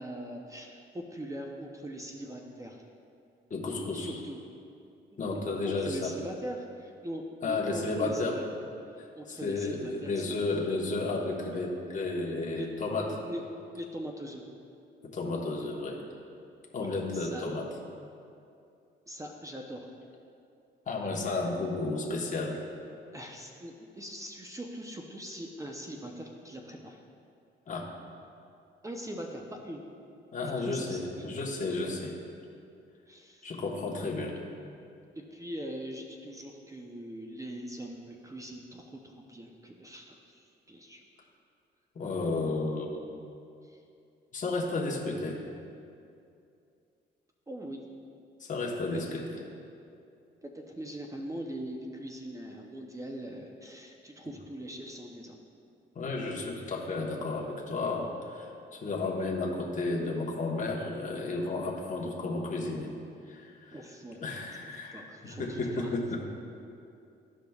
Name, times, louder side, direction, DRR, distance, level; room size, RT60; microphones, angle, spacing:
voice 1, 0.0-2.8 3.9-4.4 5.1-8.4 9.2-10.3 12.5-12.7 13.1-13.5 13.7-14.4 16.8-16.9 17.1-17.5 19.1-19.9 23.1-27.0 28.8-29.8 30.6-31.3 33.1-33.5 35.2-41.0 43.6-43.8 47.5-47.8 48.9-49.0 50.4-55.4 63.7-64.2 64.6-65.9, right 1 dB, 15° right, 1 dB, 0.6 m, -41 dB
voice 2, 3.5-4.2 5.2-6.1 7.4-8.4 9.0-13.1 15.1-16.0 16.7-17.6 20.9-22.6 27.7-27.9 30.3-32.2 33.4-34.3 41.9-43.0 44.3-45.4 48.4-49.2 55.9-62.9 63.3-63.7 64.2-66.2, left 3 dB, 40° left, -3 dB, 1.2 m, -32 dB
13.0 x 5.0 x 2.3 m, 2.6 s
cardioid pair, 90°, 20 cm